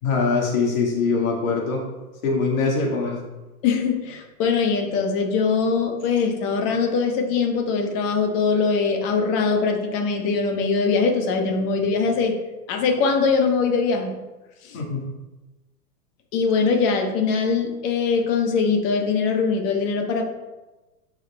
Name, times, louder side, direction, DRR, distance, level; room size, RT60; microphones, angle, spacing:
voice 1, 0.0-1.8 2.2-3.2 14.7-15.0, left 4 dB, 60° left, -2 dB, 2.0 m, -22 dB
voice 2, 3.6-12.3 12.7-14.1 14.6-14.8 16.3-20.3, left 5 dB, 35° left, 3 dB, 1.1 m, -22 dB
10.0 x 4.8 x 2.3 m, 1.1 s
hypercardioid pair, 135°, 47 cm